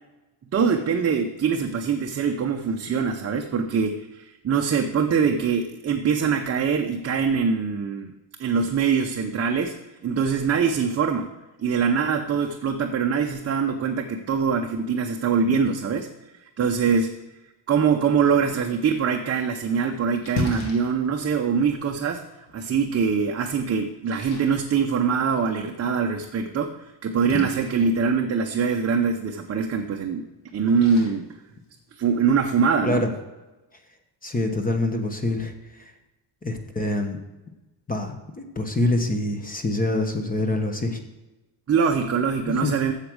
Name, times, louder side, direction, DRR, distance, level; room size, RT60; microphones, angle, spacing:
voice 1, 0.5-8.1 8.4-9.8 10.0-11.3 11.6-16.1 16.4-17.1 17.7-22.2 22.5-30.2 30.5-31.3 32.0-33.0 41.7-42.9, right 6 dB, 30° right, 3 dB, 0.7 m, -23 dB
Splash splatter, 19.3-32.3, left 3 dB, 90° left, 2.0 m, -39 dB
voice 2, 34.2-35.9 36.4-37.2 37.9-41.0 42.6-42.7, left 2 dB, 20° left, 6 dB, 1.1 m, -25 dB
8.3 x 7.3 x 6.3 m, 1.1 s
cardioid pair, 140°, 47 cm